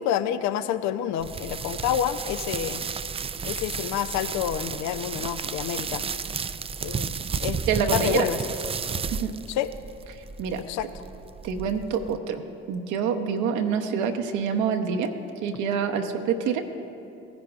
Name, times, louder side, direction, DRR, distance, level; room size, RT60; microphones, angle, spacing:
voice 1, 0.0-2.8 3.4-6.0 6.8-7.1 7.4-7.6 7.9-8.4 9.5-9.7 10.7-10.9, left 10 dB, 65° left, 12 dB, 0.5 m, -28 dB
sound 1, 1.2-12.2, right 6 dB, 20° right, 0.3 m, -33 dB
voice 2, 7.7-8.3 9.1-9.3 10.4-10.6 11.4-15.1 15.4-16.6, right 6 dB, 70° right, 4 dB, 0.9 m, -26 dB
17.5 x 10.5 x 2.4 m, 2.7 s
hypercardioid pair, 50°, 30 cm